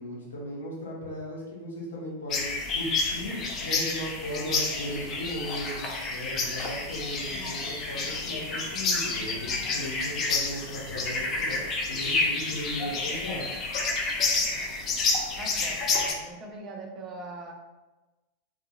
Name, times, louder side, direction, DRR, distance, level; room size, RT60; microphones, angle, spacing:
voice 1, 0.0-11.6 11.9-13.4, equal, 65° left, -4 dB, 0.8 m, -37 dB
sound 1, 2.3-16.1, left 3 dB, 30° left, 0.4 m, -29 dB
voice 2, 15.3-17.5, right 2 dB, 30° right, 1 dB, 0.4 m, -41 dB
2.6 x 2.3 x 2.2 m, 1.1 s
figure-of-eight pair, 90°, 0 cm